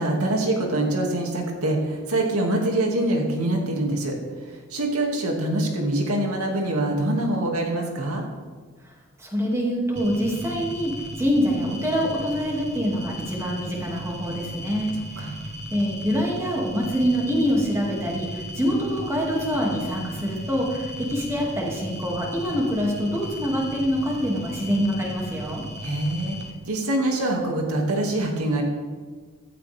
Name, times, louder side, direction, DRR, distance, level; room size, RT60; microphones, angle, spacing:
voice 1, 0.0-4.1 4.7-8.2 15.2-15.3 25.8-26.4 26.7-28.6, right 1 dB, 90° right, 1 dB, 2.5 m, -24 dB
voice 2, 9.2-15.3 15.7-25.6, equal, 15° right, -2 dB, 2.6 m, -25 dB
sound 1, 10.0-26.5, equal, 50° right, 1.4 m, -36 dB
15.0 x 12.5 x 3.6 m, 1.5 s
head